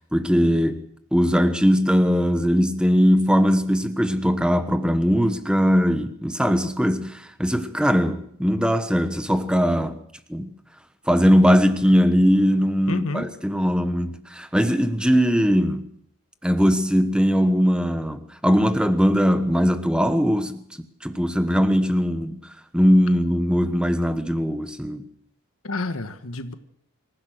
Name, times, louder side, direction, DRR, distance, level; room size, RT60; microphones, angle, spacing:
voice 1, 0.1-0.8 1.1-10.0 10.3-10.5 11.1-15.9 16.4-20.6 21.0-22.4 22.7-25.1, equal, 5° right, 1.3 m, -20 dB
voice 2, 12.9-13.3 25.6-26.5, left 2 dB, 75° left, 1.4 m, -29 dB
26.0 x 15.5 x 6.5 m
head